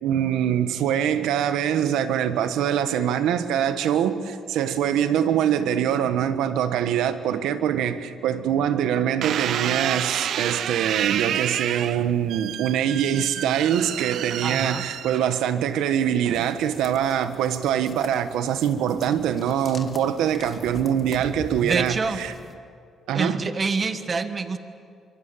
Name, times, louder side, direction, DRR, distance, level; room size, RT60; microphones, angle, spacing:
voice 1, 0.0-22.3 23.1-23.4, right 9 dB, 90° right, 1.3 m, -24 dB
sound 1, 9.2-15.6 16.2-16.7, right 10 dB, 70° right, 0.6 m, -29 dB
voice 2, 14.4-14.8 21.6-22.2 23.1-24.6, right 4 dB, 35° right, 1.5 m, -26 dB
sound 2, 16.3-22.5, left 4 dB, 35° left, 1.9 m, -43 dB
25.0 x 23.5 x 7.4 m
cardioid pair, 90°, 0 cm